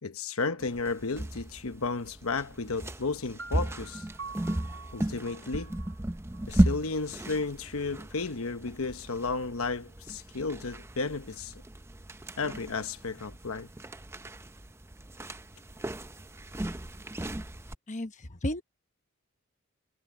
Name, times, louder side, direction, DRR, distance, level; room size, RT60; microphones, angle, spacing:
voice 1, 0.0-4.1 4.9-5.7 6.5-11.5 12.4-13.7, left 4 dB, 75° left, 1.1 m, -33 dB
sound 1, 0.6-17.7, right 1 dB, 10° right, 0.5 m, -35 dB
sound 2, 3.4-7.2, right 4 dB, 60° right, 3.3 m, -47 dB
voice 2, 17.9-18.6, left 1 dB, 35° left, 1.1 m, -33 dB
head